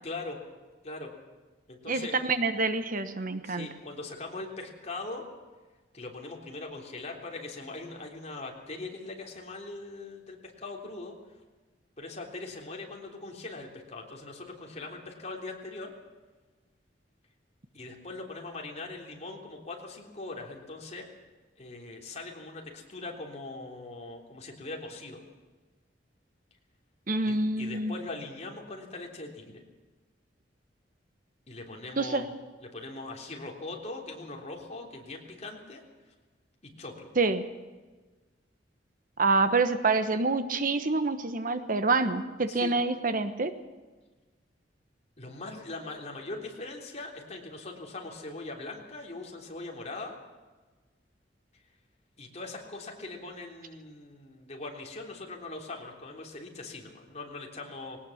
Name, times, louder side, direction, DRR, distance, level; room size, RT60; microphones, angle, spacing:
voice 1, 0.0-0.4 0.8-1.1 1.7-2.2 3.4-5.3 5.9-11.2 12.0-15.9 17.7-21.1 21.6-25.2 27.2-29.6 31.5-32.3 32.6-35.8 36.6-37.1 42.5-42.7 45.2-50.1 52.2-58.0, left 2 dB, 40° left, 1 dB, 3.5 m, -41 dB
voice 2, 1.9-3.7 27.1-27.9 32.0-32.2 37.2-37.4 39.2-43.5, right 3 dB, 50° right, 10 dB, 1.2 m, -27 dB
20.5 x 18.5 x 7.3 m, 1.3 s
head